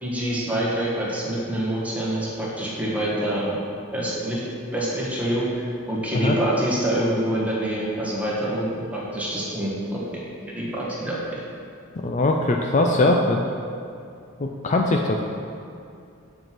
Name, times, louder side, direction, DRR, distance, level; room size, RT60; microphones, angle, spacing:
voice 1, 0.0-3.6 3.9-4.4 4.7-8.7 8.9-10.0 10.5-11.4, right 1 dB, 5° right, -6 dB, 1.6 m, -26 dB
voice 2, 12.0-13.4 14.4-15.2, left 2 dB, 35° left, 2 dB, 0.4 m, -21 dB
8.0 x 4.7 x 5.9 m, 2.4 s
head